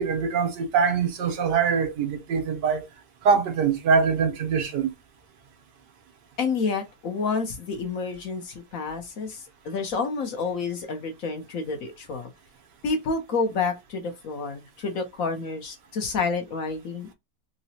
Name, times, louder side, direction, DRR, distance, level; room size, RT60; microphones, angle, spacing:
voice 1, 0.0-2.9 3.2-4.9, right 6 dB, 85° right, 1.6 m, -23 dB
voice 2, 6.4-12.3 12.8-17.1, left 4 dB, 60° left, 1.1 m, -29 dB
3.9 x 2.2 x 2.7 m
omnidirectional pair, 1.8 m